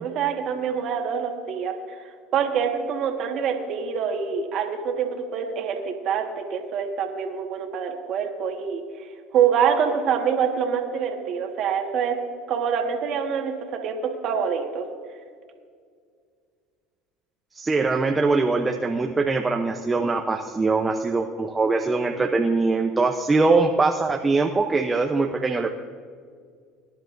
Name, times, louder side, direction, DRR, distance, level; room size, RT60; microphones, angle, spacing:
voice 1, 0.0-12.2 12.5-14.9, right 7 dB, 55° right, 3 dB, 1.6 m, -26 dB
voice 2, 17.5-25.7, right 3 dB, 20° right, 3 dB, 0.7 m, -22 dB
22.0 x 10.5 x 2.6 m, 2.1 s
supercardioid pair, 95°, 0 cm